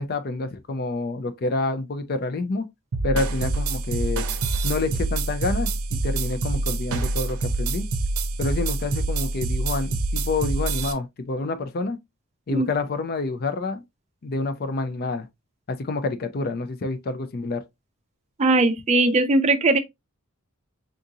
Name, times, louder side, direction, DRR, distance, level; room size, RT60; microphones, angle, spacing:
voice 1, 0.0-2.7 3.0-4.2 4.6-7.9 8.4-12.0 12.5-13.8 14.2-15.3 15.7-17.6, left 3 dB, 45° left, 0.4 m, -28 dB
sound 1, 2.9-10.9, right 3 dB, 75° right, 0.6 m, -26 dB
voice 2, 18.4-19.8, right 2 dB, 30° right, 0.5 m, -19 dB
3.7 x 2.5 x 2.6 m
head